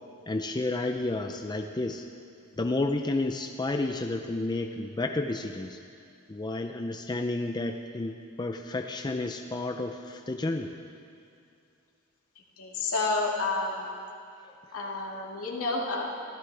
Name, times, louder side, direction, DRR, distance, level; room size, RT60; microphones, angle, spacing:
voice 1, 0.3-2.1 2.6-5.8 6.3-10.7, left 2 dB, 20° left, 4 dB, 0.5 m, -31 dB
voice 2, 12.6-13.9 14.7-16.2, left 3 dB, 75° left, -2 dB, 2.3 m, -30 dB
24.0 x 15.0 x 3.4 m, 2.5 s
head